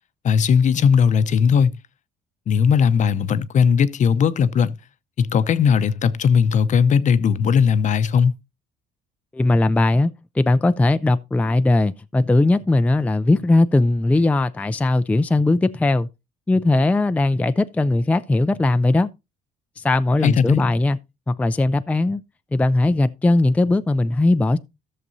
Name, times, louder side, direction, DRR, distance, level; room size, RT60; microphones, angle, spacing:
voice 1, 0.2-1.7 2.5-4.7 5.2-8.3 20.2-20.6, left 6 dB, 45° left, 0.7 m, -18 dB
voice 2, 9.3-16.1 16.5-19.1 19.8-21.0 21.3-22.2 22.5-24.6, left 2 dB, 10° left, 0.4 m, -19 dB
14.0 x 6.7 x 2.6 m
cardioid pair, 110°, 17 cm